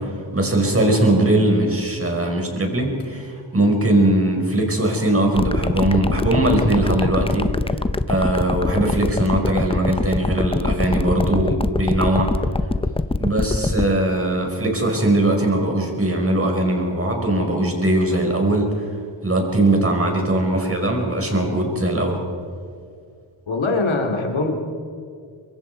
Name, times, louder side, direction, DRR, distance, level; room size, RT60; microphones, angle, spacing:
voice 1, 0.0-7.5 8.1-12.3 13.2-18.9 19.2-22.2, right 1 dB, 30° right, 1 dB, 5.0 m, -20 dB
sound 1, 5.4-13.9, left 3 dB, 10° left, 0.7 m, -22 dB
voice 2, 23.5-24.5, left 3 dB, 75° left, 1 dB, 2.9 m, -22 dB
24.5 x 22.5 x 4.7 m, 2.2 s
wide cardioid pair, 85°, 47 cm